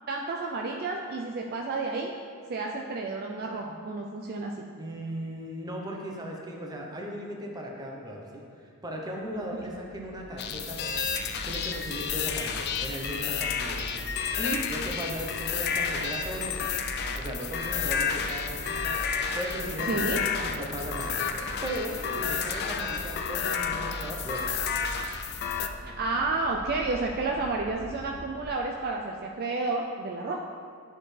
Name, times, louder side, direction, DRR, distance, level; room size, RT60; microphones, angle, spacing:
voice 1, 0.1-2.1 2.5-4.7 19.9-20.2 26.0-30.4, right 3 dB, 45° right, 0 dB, 0.4 m, -31 dB
voice 2, 4.8-11.1 11.4-14.1 14.4-16.8 17.2-21.2 21.6-24.6, equal, 15° right, -1 dB, 0.7 m, -37 dB
sound 1, 9.2-28.5, right 1 dB, 70° right, 0.7 m, -42 dB
sound 2, 10.4-25.7, left 6 dB, 45° left, 0.4 m, -31 dB
9.7 x 4.4 x 3.3 m, 2.3 s
head